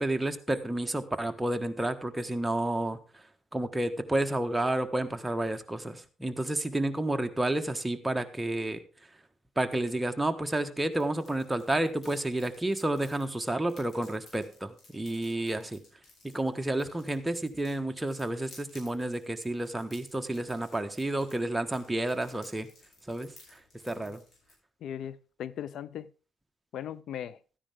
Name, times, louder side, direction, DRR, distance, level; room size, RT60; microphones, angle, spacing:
voice 1, 0.0-3.0 3.5-8.8 9.6-15.8 16.3-22.7 23.1-23.3 23.8-24.2, right 1 dB, 10° right, 1.4 m, -30 dB
sound 1, 10.9-24.5, left 2 dB, 50° left, 8.0 m, -58 dB
voice 2, 24.8-26.1 26.7-27.4, left 10 dB, 70° left, 0.5 m, -39 dB
13.5 x 9.9 x 3.6 m
cardioid pair, 90°, 0 cm